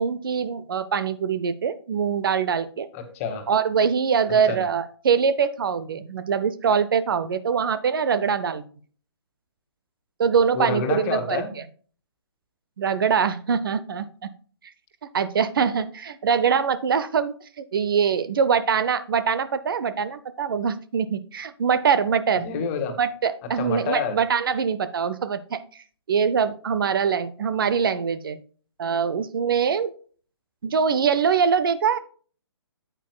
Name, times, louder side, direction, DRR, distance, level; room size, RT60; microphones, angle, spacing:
voice 1, 0.0-2.9 3.5-8.6 10.2-11.4 12.8-14.1 15.1-22.5 23.0-25.6 26.1-28.4 28.8-29.9 30.6-32.0, right 6 dB, 55° right, 14 dB, 0.7 m, -23 dB
voice 2, 2.9-3.4 4.4-4.6 10.5-11.5 22.4-23.0 23.6-24.2, left 5 dB, 30° left, 6 dB, 1.8 m, -28 dB
9.0 x 8.9 x 2.3 m, 0.42 s
figure-of-eight pair, 135°, 14 cm